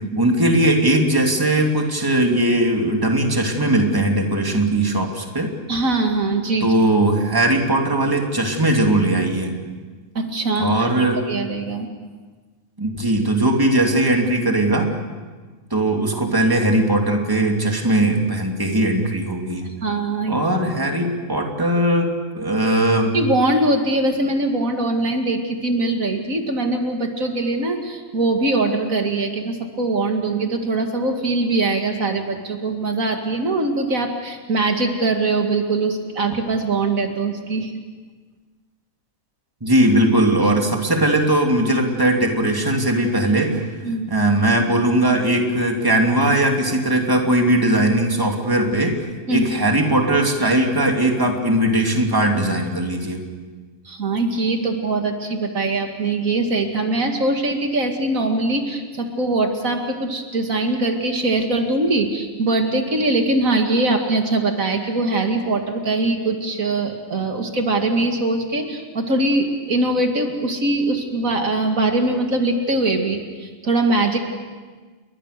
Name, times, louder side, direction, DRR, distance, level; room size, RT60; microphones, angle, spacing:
voice 1, 0.1-5.5 6.6-9.6 10.6-11.2 12.8-14.9 15.7-19.7 20.3-22.1 22.3-23.2 39.6-43.6 44.1-49.0 49.3-53.2, right 1 dB, 15° right, 2 dB, 2.8 m, -19 dB
voice 2, 5.7-6.7 10.1-11.9 19.8-20.4 23.1-37.7 43.8-44.1 49.3-49.4 53.8-74.2, right 2 dB, 80° right, 4 dB, 2.6 m, -22 dB
29.5 x 22.5 x 6.8 m, 1.4 s
omnidirectional pair, 1.4 m